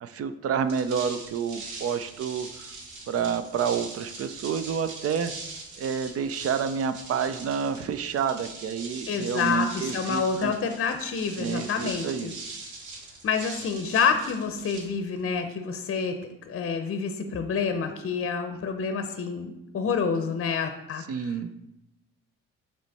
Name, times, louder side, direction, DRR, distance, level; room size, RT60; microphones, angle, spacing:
voice 1, 0.0-2.7 3.1-5.3 5.8-10.5 11.4-12.5 21.1-21.5, right 7 dB, 50° right, 11 dB, 0.5 m, -29 dB
sound 1, 0.6-15.4, right 3 dB, 80° right, 1.2 m, -42 dB
voice 2, 9.1-12.3 13.2-16.2 16.5-21.0, left 6 dB, 45° left, 7 dB, 0.7 m, -28 dB
7.6 x 3.2 x 4.1 m, 0.90 s
cardioid pair, 90°, 30 cm